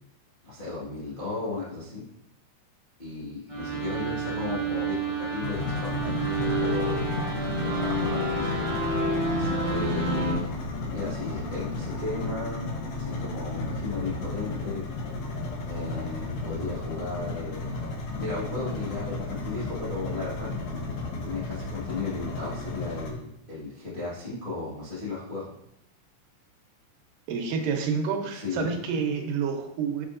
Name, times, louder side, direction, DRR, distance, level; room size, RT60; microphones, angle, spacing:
voice 1, 0.4-2.0 3.0-7.1 7.6-8.8 9.3-10.5 10.9-12.7 12.9-14.8 15.7-17.8 18.1-20.5 21.2-25.5 28.3-28.7, left 3 dB, 45° left, -9 dB, 0.6 m, -35 dB
sound 1, 3.5-10.3, right 2 dB, 35° right, 0.7 m, -29 dB
sound 2, 5.4-23.1, left 3 dB, 65° left, 1.8 m, -33 dB
voice 2, 27.3-30.1, right 6 dB, 90° right, 4 dB, 2.5 m, -28 dB
6.3 x 6.2 x 2.5 m, 0.80 s
omnidirectional pair, 3.9 m